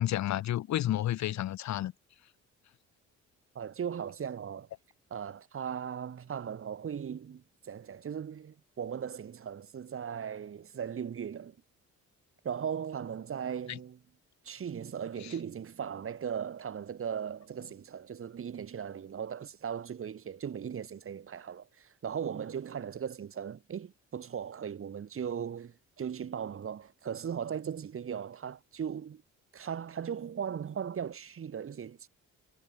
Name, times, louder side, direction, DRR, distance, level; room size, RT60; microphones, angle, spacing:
voice 1, 0.0-1.9 13.7-13.8, left 13 dB, 65° left, 1.0 m, -30 dB
voice 2, 3.5-4.7 5.1-11.6 12.4-14.0 14.4-29.2 29.5-32.1, right 8 dB, 45° right, 1.8 m, -38 dB
cardioid pair, 90°, 30 cm